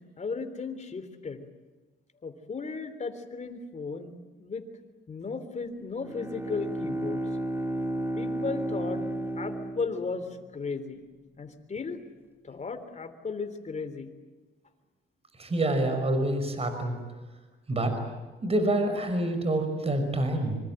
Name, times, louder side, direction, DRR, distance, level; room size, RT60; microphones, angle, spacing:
voice 1, 0.2-1.5 2.2-4.6 5.1-7.2 8.1-9.0 9.4-11.0 11.4-12.0 12.4-14.1, left 4 dB, 35° left, 9 dB, 3.6 m, -35 dB
Bowed string instrument, 6.0-10.6, right 1 dB, 10° right, 2.7 m, -33 dB
voice 2, 15.4-17.0 17.7-17.9 18.4-20.6, right 1 dB, 30° right, 7 dB, 5.6 m, -27 dB
25.5 x 25.0 x 9.1 m, 1.2 s
cardioid pair, 90°, 20 cm